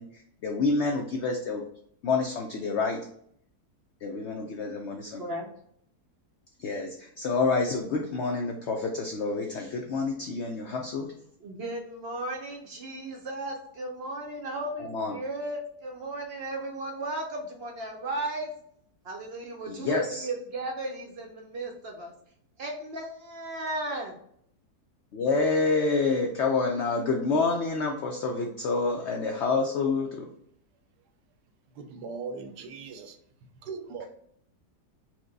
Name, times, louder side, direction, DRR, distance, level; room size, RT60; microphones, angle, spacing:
voice 1, 0.0-1.6 2.0-3.0 4.0-5.2 6.6-11.1 14.8-15.2 19.7-20.3 25.1-30.3, left 3 dB, 80° left, 0.6 m, -28 dB
voice 2, 5.2-5.5 11.4-18.5 19.0-22.1 22.6-24.2, right 2 dB, 60° right, 0.6 m, -35 dB
voice 3, 31.7-33.2 33.6-34.1, right 5 dB, 85° right, 1.2 m, -39 dB
4.5 x 2.1 x 3.9 m
omnidirectional pair, 1.7 m